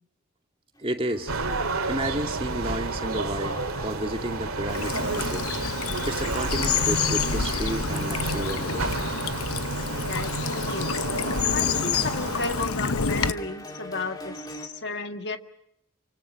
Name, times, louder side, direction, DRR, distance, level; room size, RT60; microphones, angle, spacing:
sound 1, 0.8-14.7, left 1 dB, 20° left, 2.5 m, -44 dB
voice 1, 0.8-1.3 1.9-5.5 6.0-9.0, right 1 dB, 25° right, 4 dB, 2.3 m, -31 dB
sound 2, 1.3-12.6, right 3 dB, 85° right, 2.4 m, -30 dB
Bird vocalization bird call bird song / Stream, 4.7-13.3, left 6 dB, 90° left, 1.0 m, -29 dB
voice 2, 10.0-11.1 11.5-15.4, left 3 dB, 50° left, 7 dB, 1.8 m, -33 dB
29.0 x 25.5 x 6.4 m, 0.73 s
head